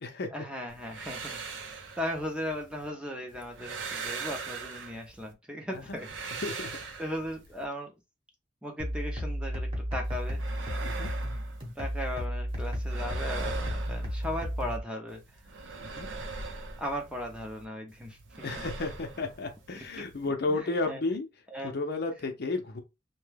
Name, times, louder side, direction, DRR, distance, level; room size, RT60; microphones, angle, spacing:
voice 1, 0.3-6.1 7.0-7.9 8.6-10.4 11.8-15.2 15.9-16.0 16.8-18.7 20.0-20.1 20.5-20.6 20.9-21.0 21.5-21.7, equal, 5° right, 0.6 m, -37 dB
sound 1, 0.7-2.9 3.3-5.3 5.7-7.6 10.0-12.2 12.5-14.8 15.1-17.6 17.9-20.3, right 4 dB, 75° right, 0.6 m, -41 dB
voice 2, 6.4-6.9 10.8-11.1 15.8-16.1 18.4-21.3 21.6-22.8, left 3 dB, 60° left, 0.6 m, -33 dB
sound 2, 8.8-14.8, equal, 25° right, 1.0 m, -33 dB
2.8 x 2.2 x 3.3 m
head